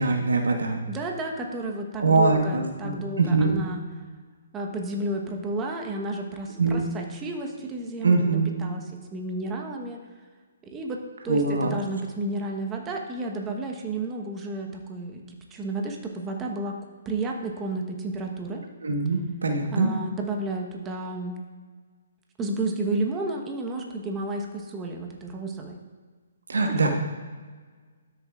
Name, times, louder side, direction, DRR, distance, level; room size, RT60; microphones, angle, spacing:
voice 1, 0.0-0.8 2.0-3.6 6.6-6.8 8.0-8.5 11.3-11.8 18.8-19.9 26.5-26.9, right 3 dB, 80° right, 2 dB, 1.2 m, -23 dB
voice 2, 0.9-3.8 4.5-8.8 9.1-10.0 10.7-16.8 17.0-18.6 19.7-21.4 22.4-25.8 26.7-26.8, right 2 dB, 15° right, 2 dB, 1.1 m, -32 dB
13.0 x 6.9 x 2.4 m, 1.5 s
hypercardioid pair, 145°, 0 cm